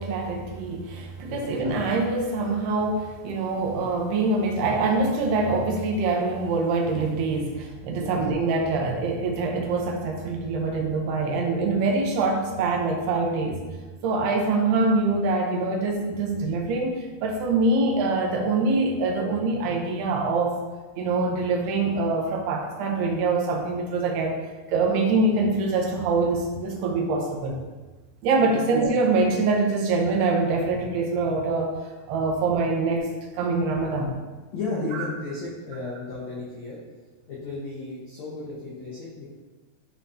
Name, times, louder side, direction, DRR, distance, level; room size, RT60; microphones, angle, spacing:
voice 1, 0.0-13.6 14.0-20.6 21.0-24.4 24.7-27.6 28.2-31.7 32.1-33.1 33.4-34.2, right 3 dB, 80° right, 1 dB, 2.8 m, -24 dB
voice 2, 34.5-36.8 37.3-39.3, left 3 dB, 65° left, -8 dB, 1.8 m, -34 dB
11.0 x 4.1 x 2.7 m, 1.3 s
omnidirectional pair, 4.7 m